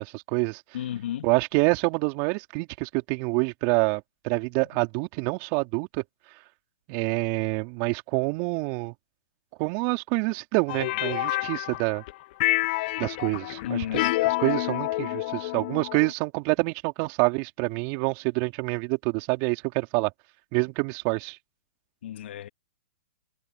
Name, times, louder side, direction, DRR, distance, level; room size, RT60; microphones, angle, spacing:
voice 1, 0.0-0.6 1.2-6.0 6.9-8.9 9.6-12.0 13.0-20.1 20.5-21.4, right 30 dB, 40° right, 3.1 m, -27 dB
voice 2, 0.7-1.3 13.6-14.2 22.0-22.5, left 11 dB, 65° left, 2.2 m, -32 dB
sound 1, 10.7-12.1 12.4-16.1, left 19 dB, 50° left, 1.2 m, -28 dB
hypercardioid pair, 120°, 7 cm